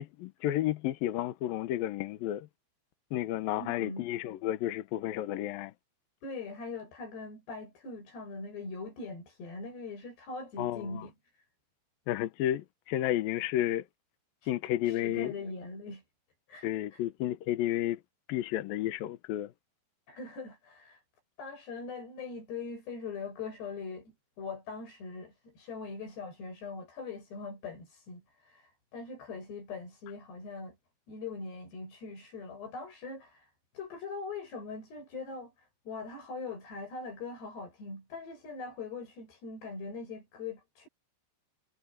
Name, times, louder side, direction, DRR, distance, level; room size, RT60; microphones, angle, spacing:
voice 1, 0.0-2.5 3.1-5.7 10.6-11.1 12.1-13.8 14.5-15.3 16.6-18.0 18.3-19.5, left 13 dB, 80° left, 2.0 m, -32 dB
voice 2, 3.6-4.0 6.2-11.1 14.4-14.5 14.8-16.0 16.5-17.0 20.1-21.0 21.4-30.8 31.1-40.9, left 4 dB, 55° left, 9.1 m, -42 dB
omnidirectional pair, 5.7 m